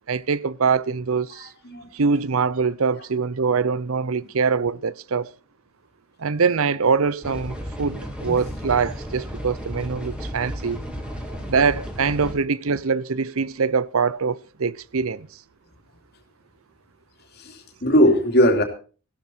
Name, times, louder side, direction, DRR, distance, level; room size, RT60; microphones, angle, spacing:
voice 1, 0.1-1.5 1.9-5.3 6.2-10.8 11.5-15.3, right 5 dB, 70° right, 0.6 m, -23 dB
sound 1, 7.2-12.3, equal, 5° right, 3.1 m, -33 dB
voice 2, 8.0-8.6 11.2-11.5 12.2-12.3 17.4-18.6, equal, 45° left, 2.8 m, -21 dB
15.5 x 12.5 x 4.5 m
head